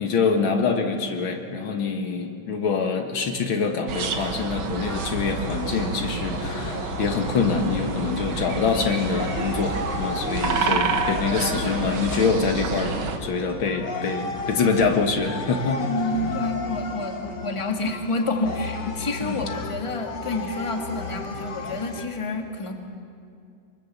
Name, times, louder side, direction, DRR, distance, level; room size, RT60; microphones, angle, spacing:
voice 1, 0.0-15.8 16.2-16.4 19.2-19.4, left 5 dB, 80° left, 4 dB, 2.4 m, -25 dB
sound 1, 3.9-13.2, right 4 dB, 80° right, 2.2 m, -29 dB
sound 2, 4.8-22.1, left 3 dB, 60° left, 2.1 m, -34 dB
voice 2, 15.8-22.7, left 2 dB, 15° left, 3 dB, 1.8 m, -29 dB
24.5 x 23.5 x 7.3 m, 2.4 s
omnidirectional pair, 2.2 m